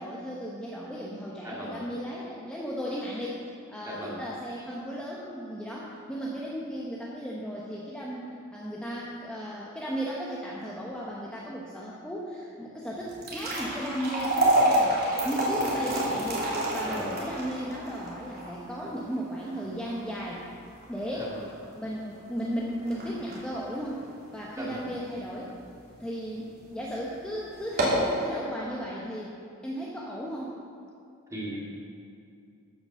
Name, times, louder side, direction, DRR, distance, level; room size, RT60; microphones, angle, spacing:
voice 1, 0.0-3.4 3.7-20.4 20.9-21.3 21.7-24.1 24.3-25.5 26.0-29.3 29.6-30.6, equal, 5° left, -5 dB, 1.0 m, -35 dB
voice 2, 1.4-1.8 3.8-4.2 16.9-17.2 21.2-21.4 24.6-24.9 31.3-31.9, right 1 dB, 15° right, -5 dB, 2.4 m, -37 dB
sound 1, 13.0-25.3 25.7-25.8 26.5-26.7 27.0-27.1 27.6-28.1, right 1 dB, 50° right, 3.0 m, -29 dB
14.0 x 6.1 x 6.4 m, 2.5 s
head